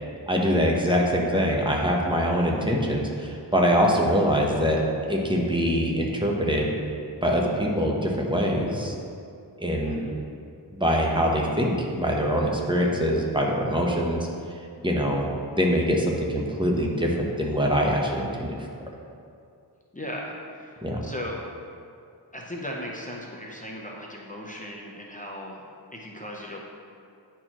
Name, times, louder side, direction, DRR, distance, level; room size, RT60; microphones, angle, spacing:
voice 1, 0.3-4.8 5.1-6.7 7.2-8.9 9.6-10.0 10.7-14.3 14.8-15.3 15.6-18.7 20.8-21.0, equal, 10° right, -1 dB, 0.9 m, -24 dB
voice 2, 9.8-10.2 19.9-20.7 21.0-21.4 22.3-25.6 25.9-26.6, left 1 dB, 20° left, -2 dB, 0.7 m, -37 dB
9.5 x 4.5 x 2.9 m, 2.4 s
wide cardioid pair, 85°, 42 cm